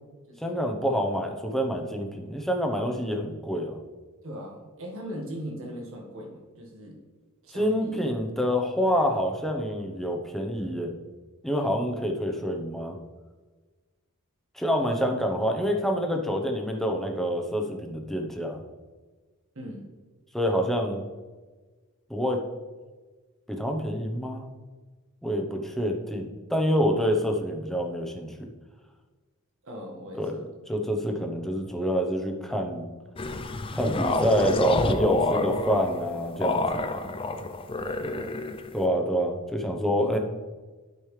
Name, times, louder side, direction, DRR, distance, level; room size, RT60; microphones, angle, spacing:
voice 1, 0.4-3.8 7.5-10.9 11.4-13.0 14.5-18.6 20.3-21.0 22.1-22.4 23.5-24.5 25.2-28.5 30.2-32.9 33.7-36.8 38.7-40.2, equal, ahead, 2 dB, 0.9 m, -27 dB
voice 2, 4.2-7.0 7.4-8.0 14.9-15.1 19.5-19.9 29.6-30.4 37.8-38.4 40.0-40.2, equal, 65° right, 0 dB, 1.6 m, -40 dB
sound 1, 33.2-38.8, left 2 dB, 25° left, 0.5 m, -28 dB
12.0 x 5.4 x 3.3 m, 1.3 s
head